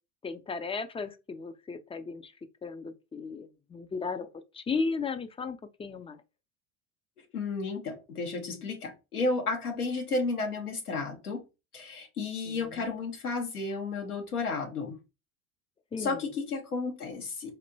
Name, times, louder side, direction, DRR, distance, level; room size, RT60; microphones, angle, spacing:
voice 1, 0.2-2.3 2.6-4.3 4.5-6.2 12.5-12.9 15.9-16.3, left 4 dB, 15° left, 0.5 m, -35 dB
voice 2, 7.3-11.4 11.7-15.0 16.0-17.6, left 3 dB, 90° left, 1.2 m, -32 dB
4.3 x 2.9 x 2.7 m
hypercardioid pair, 70°, 43 cm